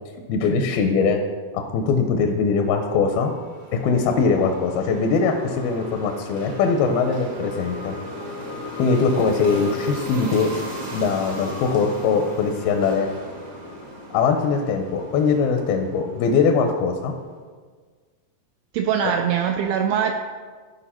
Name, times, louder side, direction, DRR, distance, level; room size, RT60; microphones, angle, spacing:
voice 1, 0.3-1.2 1.5-3.3 3.7-8.0 8.8-10.5 10.9-13.1 14.1-17.1, left 5 dB, 80° left, 4 dB, 2.2 m, -21 dB
sound 1, 2.5-16.9, left 1 dB, 65° right, 0.8 m, -36 dB
voice 2, 18.7-20.1, right 8 dB, 85° right, 3 dB, 2.2 m, -22 dB
14.0 x 4.9 x 4.3 m, 1.6 s
omnidirectional pair, 4.9 m